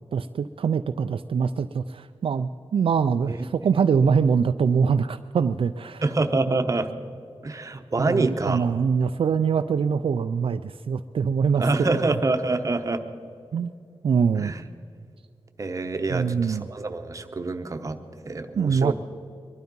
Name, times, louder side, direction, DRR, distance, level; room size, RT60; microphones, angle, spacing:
voice 1, 0.1-6.0 8.0-12.1 13.5-13.7 14.0-14.5 16.1-16.7 18.6-18.9, right 6 dB, 60° right, 9 dB, 0.4 m, -24 dB
voice 2, 6.0-6.9 7.4-8.6 11.6-13.0 14.4-14.6 15.6-18.0 18.3-18.9, right 3 dB, 35° right, 7 dB, 0.9 m, -26 dB
22.0 x 12.0 x 5.3 m, 2.4 s
wide cardioid pair, 160°, 10 cm